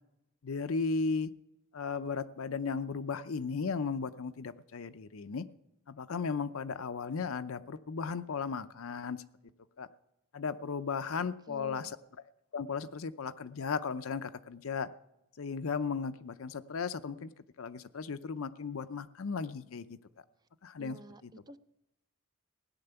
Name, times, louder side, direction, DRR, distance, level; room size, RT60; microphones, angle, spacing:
voice 1, 0.4-1.3 1.7-5.5 5.9-9.2 9.8-9.9 10.3-12.0 12.5-14.9 15.4-17.3 17.6-20.0 20.6-21.0 21.2-21.3, left 5 dB, 65° left, 12 dB, 0.6 m, -35 dB
voice 2, 11.5-11.9 20.8-21.6, right 2 dB, 20° right, 12 dB, 0.5 m, -50 dB
17.0 x 9.7 x 6.9 m, 0.90 s
head